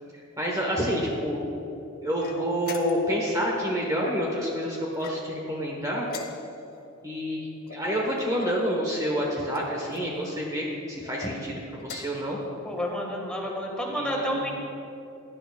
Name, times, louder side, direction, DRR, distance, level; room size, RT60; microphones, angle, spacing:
voice 1, 0.1-1.4 2.0-6.1 7.0-12.4 14.0-14.5, equal, 15° right, -2 dB, 1.1 m, -28 dB
sound 1, 2.2-3.2 4.9-5.5 6.1-6.8 7.7-8.6 9.5-10.1 11.0-11.4 11.8-12.3, left 3 dB, 45° left, 0.8 m, -42 dB
voice 2, 12.6-14.6, equal, 5° left, -2 dB, 1.6 m, -30 dB
16.5 x 10.5 x 2.3 m, 2.9 s
head